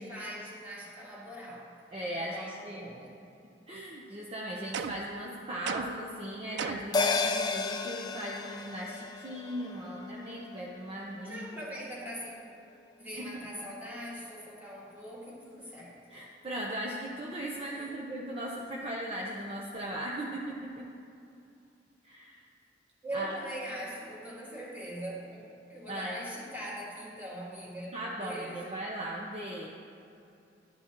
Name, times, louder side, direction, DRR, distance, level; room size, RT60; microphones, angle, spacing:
voice 1, 0.0-1.7 2.1-3.2 11.2-12.3 13.0-16.0 17.7-17.9 23.0-27.9 28.2-28.8, right 1 dB, 10° right, -6 dB, 2.0 m, -41 dB
voice 2, 1.9-2.8 3.7-11.5 13.1-13.5 16.1-20.9 22.0-22.4 23.1-23.3 25.9-26.2 27.9-29.7, right 1 dB, 35° right, -3 dB, 0.7 m, -38 dB
sound 1, 4.7-5.2 5.7-6.1 6.6-7.0, right 6 dB, 75° right, 0.3 m, -36 dB
sound 2, 6.9-11.7 12.0-12.1, left 4 dB, 25° left, 0.4 m, -33 dB
12.0 x 8.7 x 2.9 m, 2.7 s
head